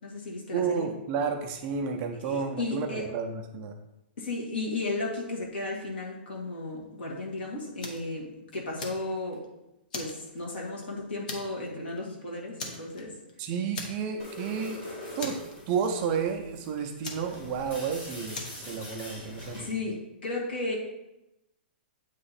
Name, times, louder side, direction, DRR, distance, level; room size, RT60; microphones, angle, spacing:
voice 1, 0.0-0.9 2.2-3.1 4.2-9.5 9.9-13.2 19.5-20.8, left 2 dB, 65° left, -2 dB, 1.9 m, -34 dB
voice 2, 0.5-3.7 13.4-14.8 15.2-15.4 15.7-19.7, right 6 dB, 20° right, 4 dB, 0.4 m, -31 dB
Fire, 7.8-8.1 8.5-9.4 9.9-10.8 11.3-11.7 12.0-12.1 12.6-13.3 13.7-14.3 14.6-14.7 15.2-16.0 17.0-17.9 18.3-18.7, left 3 dB, 45° left, 1.0 m, -39 dB
sound 1, 14.2-19.8, left 1 dB, 25° left, 1.3 m, -43 dB
8.5 x 2.9 x 4.1 m, 0.93 s
hypercardioid pair, 175°, 6 cm